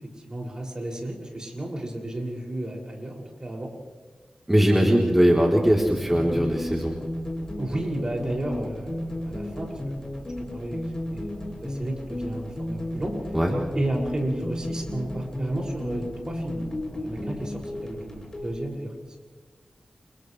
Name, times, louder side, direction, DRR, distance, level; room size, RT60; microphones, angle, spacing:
voice 1, 0.2-3.7 4.7-5.4 7.6-10.0 10.4-13.2 13.7-16.6 16.9-19.2, right 1 dB, 35° right, -1 dB, 6.9 m, -33 dB
voice 2, 4.5-6.9 13.3-13.5, equal, 10° right, -3 dB, 3.8 m, -20 dB
sound 1, 5.6-18.6, left 1 dB, 30° left, 7.8 m, -33 dB
30.0 x 30.0 x 3.4 m, 1.3 s
wide cardioid pair, 80°, 2 cm